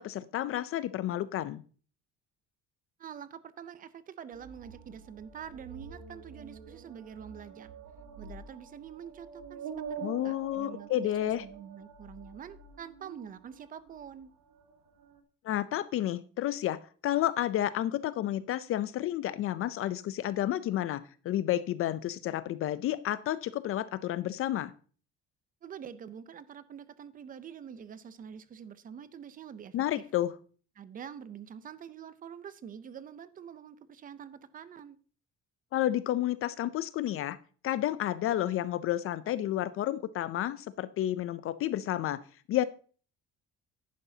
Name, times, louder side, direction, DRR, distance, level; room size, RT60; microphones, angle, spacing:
voice 1, 0.0-1.6 10.0-11.4 15.4-24.7 29.7-30.3 35.7-37.4 37.6-42.2 42.5-42.7, left 13 dB, 50° left, 0.4 m, -31 dB
voice 2, 3.0-7.7 8.2-14.3 25.6-30.1 30.8-35.0, right 8 dB, 30° right, 0.5 m, -46 dB
sound 1, 4.3-14.2 14.5-15.2, right 6 dB, 70° right, 1.6 m, -46 dB
11.0 x 9.7 x 2.7 m
cardioid pair, 170°, 29 cm